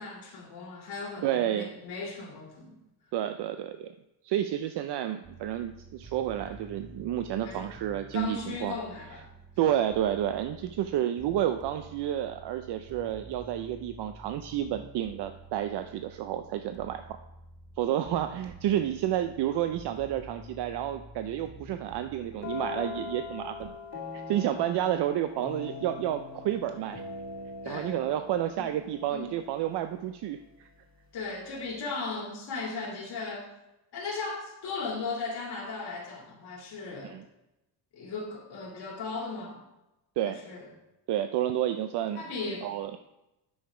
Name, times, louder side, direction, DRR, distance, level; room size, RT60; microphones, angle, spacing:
voice 1, 0.0-2.8 7.4-7.7 8.1-9.3 18.0-18.2 24.4-24.6 27.6-28.0 28.6-28.7 29.1-29.3 31.1-33.5 33.9-37.2 37.9-39.6 40.2-40.7 42.1-42.7, left 4 dB, 60° left, -2 dB, 2.2 m, -37 dB
voice 2, 1.2-1.7 3.1-3.9 4.2-8.8 9.6-17.0 17.8-23.7 24.1-27.0 27.6-30.7 37.0-37.2 40.2-40.4 41.1-42.2 42.6-42.9, right 11 dB, 65° right, 9 dB, 0.5 m, -30 dB
sound 1, 5.2-23.7, right 2 dB, 20° right, 0.7 m, -50 dB
sound 2, 22.4-30.1, left 4 dB, 40° left, 2.8 m, -41 dB
9.3 x 6.5 x 4.8 m, 0.94 s
cardioid pair, 170°, 43 cm